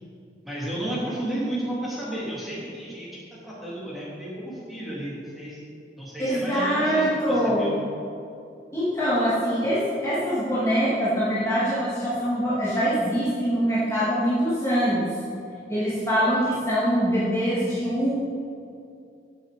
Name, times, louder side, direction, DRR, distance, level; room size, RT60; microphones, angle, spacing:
voice 1, 0.4-5.6 6.0-7.8, right 1 dB, ahead, -8 dB, 3.4 m, -33 dB
voice 2, 6.3-7.7 8.7-15.2 15.7-18.2, equal, 15° left, -11 dB, 2.6 m, -23 dB
15.5 x 7.6 x 5.3 m, 2.5 s
head